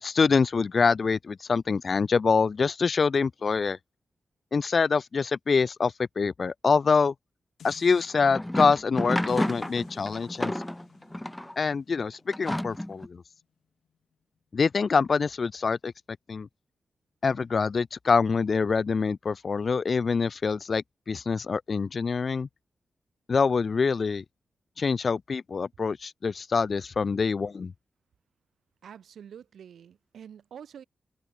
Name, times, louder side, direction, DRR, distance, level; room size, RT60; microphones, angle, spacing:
voice 1, 0.0-3.8 4.5-7.1 7.6-10.5 11.6-13.2 14.5-15.9 16.3-16.5 17.2-22.5 23.3-24.2 24.8-27.7, left 5 dB, 55° left, 0.4 m, -25 dB
sound 1, 7.6-8.1 9.3-14.4 14.9-15.0, left 8 dB, 80° left, 7.1 m, -57 dB
sound 2, 8.0-11.5 12.3-13.1, left 1 dB, 10° left, 1.2 m, -31 dB
voice 2, 28.8-30.8, right 8 dB, 85° right, 2.8 m, -46 dB
cardioid pair, 70°, 0 cm